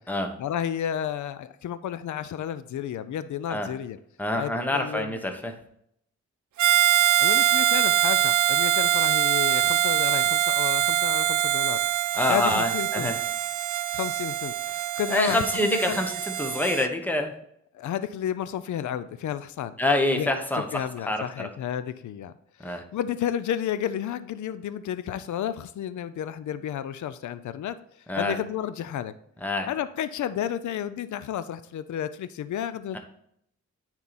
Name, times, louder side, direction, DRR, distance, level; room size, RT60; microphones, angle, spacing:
voice 1, 0.4-4.0 4.4-5.2 7.2-11.8 12.3-13.1 13.9-16.0 17.7-19.8 20.1-20.3 20.7-22.3 22.6-27.8 28.2-29.1 29.7-33.0, left 10 dB, 80° left, 13 dB, 0.5 m, -31 dB
voice 2, 4.2-5.5 12.1-13.2 15.1-17.3 19.8-21.5 22.6-22.8 28.1-28.4 29.4-29.7 32.9-33.0, left 1 dB, 5° left, 5 dB, 1.0 m, -26 dB
Harmonica, 6.6-16.9, right 13 dB, 80° right, 0.6 m, -24 dB
9.5 x 4.5 x 4.1 m, 0.71 s
cardioid pair, 100°, 29 cm